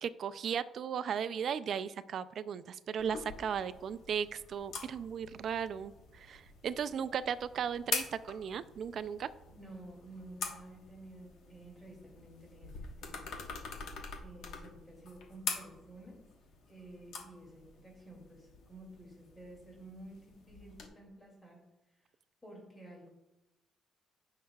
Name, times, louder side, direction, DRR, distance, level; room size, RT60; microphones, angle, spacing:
voice 1, 0.0-9.3, right 7 dB, 55° right, 14 dB, 0.3 m, -36 dB
sound 1, 3.0-20.9, left 5 dB, 80° left, 1.2 m, -45 dB
voice 2, 9.5-13.6 14.2-16.3 16.7-21.6 22.4-23.1, right 1 dB, 10° left, -2 dB, 2.4 m, -52 dB
16.0 x 5.6 x 2.3 m, 0.96 s
cardioid pair, 145°, 0 cm